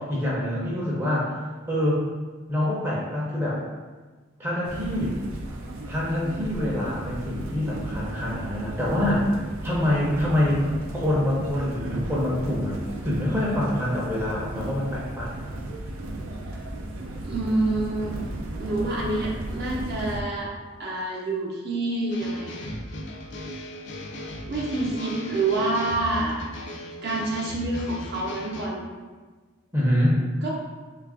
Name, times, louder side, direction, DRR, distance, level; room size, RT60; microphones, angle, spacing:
voice 1, 0.0-1.4 1.7-2.0 2.5-3.6 4.4-5.2 5.9-9.3 9.6-12.7 13.0-15.3 29.7-30.2, left 1 dB, 10° right, -6 dB, 0.5 m, -25 dB
sound 1, 4.6-20.2, right 1 dB, 85° right, 0.5 m, -35 dB
voice 2, 17.2-18.2 18.6-20.5 20.8-22.6 24.5-26.4 27.0-28.8 30.4-30.5, right 2 dB, 50° right, -3 dB, 0.7 m, -27 dB
sound 2, 22.1-28.7, left 1 dB, 55° left, 0.4 m, -37 dB
3.2 x 2.4 x 3.5 m, 1.4 s
head